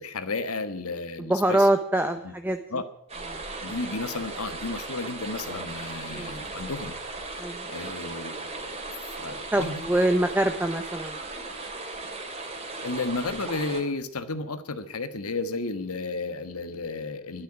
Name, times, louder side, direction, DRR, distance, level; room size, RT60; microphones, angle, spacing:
voice 1, 0.0-1.7 2.2-2.3 2.7-2.9 3.6-6.9 7.7-8.7 9.2-9.8 12.8-17.4, left 3 dB, 80° left, 11 dB, 1.5 m, -33 dB
voice 2, 1.2-2.8 3.3-3.4 6.1-6.4 7.4-7.9 9.5-11.2, right 1 dB, 10° right, 7 dB, 0.8 m, -25 dB
sound 1, 3.1-13.8, right 3 dB, 30° right, 2.7 m, -37 dB
12.0 x 10.5 x 10.0 m, 0.75 s
head